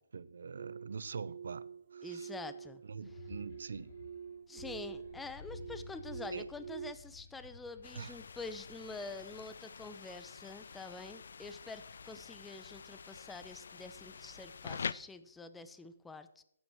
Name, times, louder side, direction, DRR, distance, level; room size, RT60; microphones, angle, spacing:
voice 1, 0.1-2.3 2.8-4.0 6.3-6.5 7.9-8.2, right 5 dB, 65° right, 0.8 m, -44 dB
sound 1, 0.6-6.9, right 7 dB, 45° right, 0.5 m, -47 dB
voice 2, 2.0-2.8 4.5-16.4, left 3 dB, 5° left, 0.9 m, -47 dB
sound 2, 2.9-9.3, left 4 dB, 40° left, 1.3 m, -53 dB
sound 3, 7.8-14.9, left 6 dB, 60° left, 0.6 m, -46 dB
14.5 x 10.0 x 6.3 m
hypercardioid pair, 155°, 0 cm